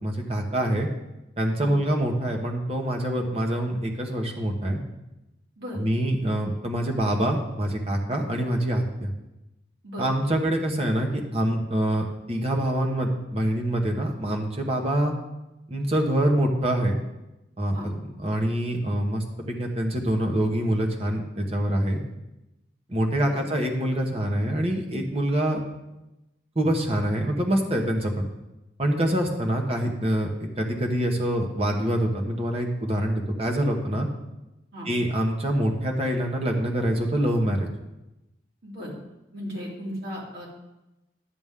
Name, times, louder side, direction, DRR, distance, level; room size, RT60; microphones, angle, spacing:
voice 1, 0.0-0.9 1.4-4.8 5.7-9.1 10.0-15.1 15.7-17.0 17.6-22.0 22.9-25.6 26.5-28.3 28.8-34.1 34.8-37.7, right 1 dB, 30° right, 1 dB, 1.1 m, -25 dB
voice 2, 38.6-38.9 39.3-40.5, equal, 60° right, -4 dB, 2.8 m, -36 dB
11.0 x 7.0 x 3.6 m, 0.96 s
head